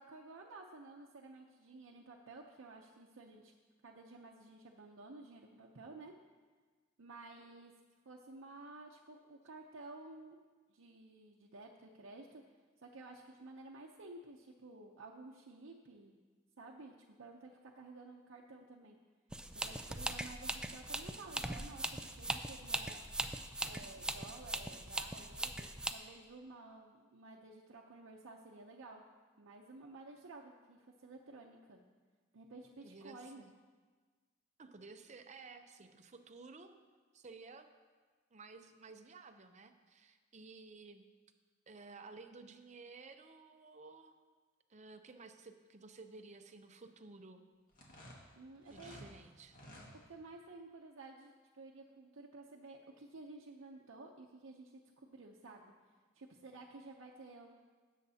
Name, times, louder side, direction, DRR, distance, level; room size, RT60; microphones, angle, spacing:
voice 1, 0.0-3.5 3.8-6.1 7.0-7.7 8.0-10.4 10.7-12.4 12.8-16.1 16.6-19.0 19.5-23.0 23.6-29.0 29.4-31.8 32.3-33.4 48.4-49.0 50.0-55.7 56.1-57.5, right 3 dB, 85° right, -2 dB, 0.7 m, -53 dB
sound 1, 19.3-25.9, right 1 dB, 5° right, 0.3 m, -40 dB
voice 2, 32.8-33.5 34.6-36.7 37.1-37.7 38.3-41.1 41.7-44.1 44.7-47.4 48.7-49.6, right 3 dB, 35° right, 7 dB, 0.6 m, -54 dB
sound 2, 47.7-49.1 49.4-49.9, equal, 45° left, 1.9 m, -53 dB
17.0 x 7.3 x 2.8 m, 1.5 s
head